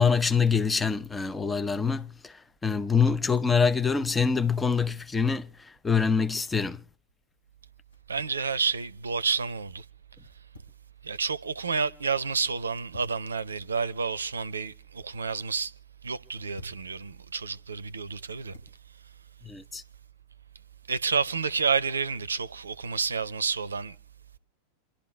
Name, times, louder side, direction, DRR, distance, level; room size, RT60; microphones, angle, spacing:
voice 1, 0.0-6.8 19.4-19.8, left 5 dB, 10° left, 0.6 m, -25 dB
sound 1, 6.3-6.6 7.8-8.4 10.1-10.9 11.3-11.7 12.6-13.3 14.3-14.8 16.1-16.9 18.0-18.8, equal, 75° left, 4.8 m, -51 dB
voice 2, 8.1-9.8 11.0-15.7 16.0-18.5 20.9-24.0, right 5 dB, 75° right, 0.6 m, -30 dB
27.0 x 11.5 x 3.3 m
figure-of-eight pair, 90°, 0 cm